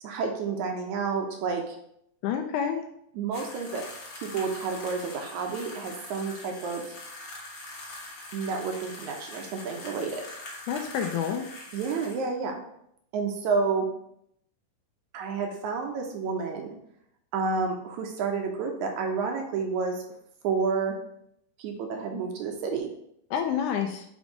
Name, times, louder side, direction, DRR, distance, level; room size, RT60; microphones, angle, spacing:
voice 1, 0.0-1.8 3.2-3.9 4.2-7.0 8.3-10.3 11.7-12.6 13.1-13.9 15.1-16.8 17.3-20.0 20.4-21.0 21.6-22.9, right 5 dB, 75° right, 3 dB, 1.9 m, -30 dB
voice 2, 2.2-2.8 10.7-11.4 23.3-24.1, left 8 dB, 80° left, 4 dB, 1.9 m, -28 dB
sound 1, 3.3-12.3, left 2 dB, 50° left, 1.5 m, -43 dB
5.2 x 4.0 x 4.7 m, 0.74 s
omnidirectional pair, 3.7 m